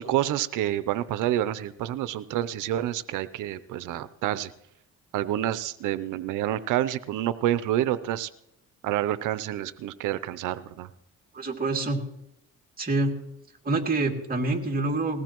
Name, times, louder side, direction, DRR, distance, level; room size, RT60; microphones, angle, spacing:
voice 1, 0.0-4.5 5.1-8.3 8.8-10.9, right 12 dB, 85° right, 16 dB, 0.7 m, -28 dB
voice 2, 11.3-12.0 12.8-13.1 13.6-15.2, right 2 dB, 30° right, 2 dB, 2.5 m, -26 dB
20.0 x 16.5 x 3.0 m, 0.79 s
cardioid pair, 90°, 30 cm